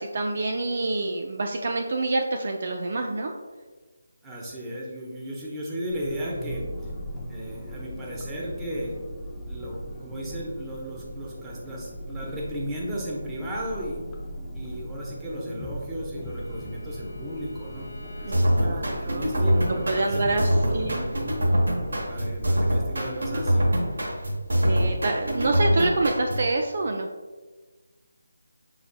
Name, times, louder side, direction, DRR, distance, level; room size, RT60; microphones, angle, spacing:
voice 1, 0.0-3.3 18.2-19.4 19.9-21.0 24.5-27.1, right 2 dB, 50° right, 3 dB, 0.4 m, -27 dB
voice 2, 4.2-6.9 7.3-9.0 9.5-14.0 14.5-21.1 22.1-23.7, equal, 10° right, -5 dB, 0.9 m, -35 dB
sound 1, 5.9-22.5, equal, 10° left, 0.5 m, -38 dB
Bowed string instrument, 16.2-21.2, left 3 dB, 75° left, 0.7 m, -47 dB
sound 2, 18.3-26.5, equal, 70° right, 1.1 m, -24 dB
5.5 x 3.9 x 2.2 m, 1.3 s
figure-of-eight pair, 155°, 0 cm